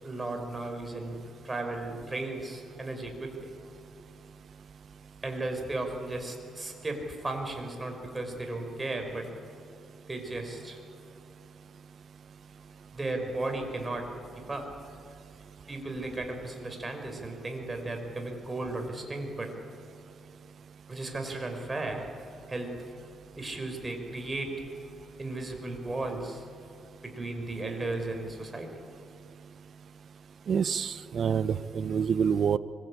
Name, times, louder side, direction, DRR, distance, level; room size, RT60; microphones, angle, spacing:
voice 1, 0.0-1.2 1.4-3.5 5.2-9.3 10.1-10.8 12.9-14.0 14.4-14.7 15.7-19.5 20.9-22.1 22.5-22.7 23.4-24.5 25.2-26.4 27.0-28.7, right 2 dB, 20° right, 4 dB, 5.6 m, -35 dB
voice 2, 30.5-32.6, right 7 dB, 55° right, 14 dB, 1.0 m, -27 dB
25.0 x 22.5 x 8.8 m, 2.5 s
cardioid pair, 90°, 0 cm